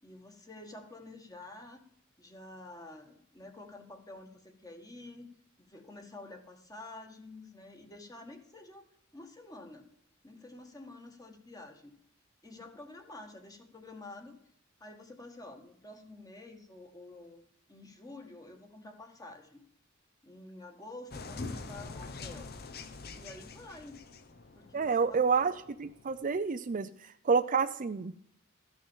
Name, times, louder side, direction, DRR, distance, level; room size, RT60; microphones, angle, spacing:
voice 1, 0.0-1.8 2.2-8.8 9.1-9.9 10.2-11.9 12.4-14.4 14.8-17.4 17.7-19.7 20.2-22.5 23.1-24.1 24.6-25.5, left 2 dB, 20° left, 4 dB, 1.7 m, -49 dB
sound 1, 21.1-26.4, left 3 dB, 50° left, 0.9 m, -45 dB
voice 2, 24.7-25.5 25.8-26.9 27.2-28.1, right 5 dB, 40° right, 11 dB, 0.5 m, -28 dB
14.0 x 6.2 x 7.2 m, 0.68 s
head